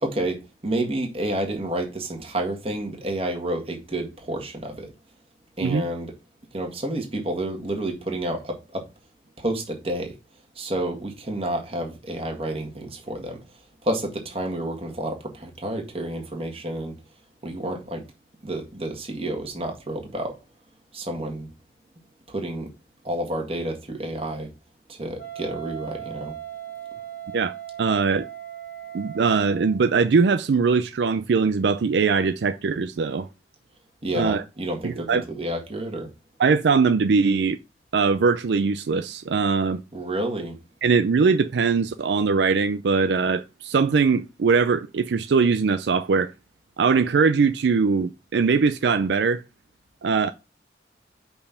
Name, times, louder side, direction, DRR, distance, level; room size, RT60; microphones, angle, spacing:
voice 1, 0.0-4.9 5.6-6.1 6.5-8.8 9.4-10.1 10.6-13.4 13.8-17.0 17.4-18.0 18.4-20.3 20.9-21.5 22.3-22.7 23.0-24.5 24.9-26.4 34.0-36.1 39.9-40.6, right 1 dB, 35° right, 1.8 m, -29 dB
Wind instrument woodwind instrument, 25.2-29.9, right 11 dB, 65° left, 1.7 m, -38 dB
voice 2, 27.3-28.3 28.9-33.3 34.1-34.4 34.8-35.2 36.4-37.6 37.9-39.8 40.8-46.3 46.8-49.4 50.0-50.3, right 5 dB, 75° right, 0.4 m, -21 dB
5.4 x 4.5 x 5.7 m
head